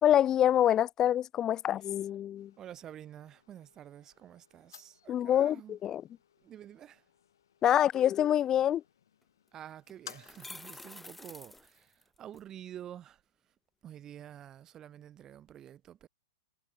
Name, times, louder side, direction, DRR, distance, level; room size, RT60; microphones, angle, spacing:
voice 1, 0.0-2.5 5.1-6.0 7.6-8.8, left 11 dB, 25° left, 0.8 m, -26 dB
sound 1, 2.4-10.6, left 9 dB, 70° left, 3.9 m, -57 dB
voice 2, 2.6-5.8 6.4-7.0 9.5-13.2 13.8-16.1, right 10 dB, 25° right, 2.9 m, -49 dB
sound 2, 9.2-9.3 9.9-12.4, left 2 dB, 5° left, 2.2 m, -49 dB
hypercardioid pair, 110°, 2 cm